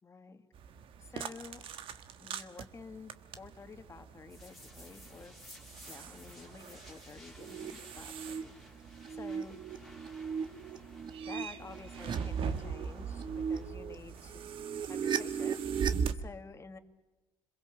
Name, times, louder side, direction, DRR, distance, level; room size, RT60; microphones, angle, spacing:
voice 1, 0.0-0.5 1.0-1.6 2.2-5.3 5.9-8.5 8.8-9.6 11.1-14.5 14.9-16.8, left 4 dB, 30° left, 8 dB, 2.0 m, -50 dB
sound 1, 0.5-16.1, right 6 dB, 75° right, 1.4 m, -42 dB
sound 2, 4.3-14.4, left 1 dB, ahead, 3.7 m, -56 dB
sound 3, 7.4-7.7 8.0-8.4 8.9-13.9 14.3-16.1, right 7 dB, 55° right, 1.4 m, -38 dB
27.0 x 22.0 x 7.2 m, 1.1 s
cardioid pair, 105°, 9 cm